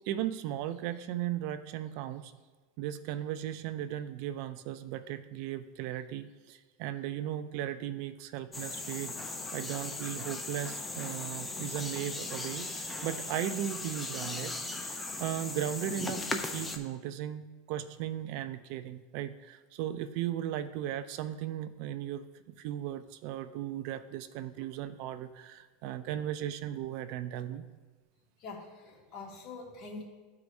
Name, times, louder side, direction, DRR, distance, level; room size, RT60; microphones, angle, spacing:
voice 1, 0.1-2.3 2.8-9.1 9.5-14.5 14.8-27.6, right 11 dB, 55° right, 12 dB, 0.4 m, -37 dB
sound 1, 8.5-16.8, left 3 dB, 10° left, 0.6 m, -38 dB
voice 2, 28.4-30.0, left 3 dB, 35° left, -3 dB, 1.9 m, -45 dB
13.0 x 4.7 x 2.6 m, 1.3 s
supercardioid pair, 140°, 0 cm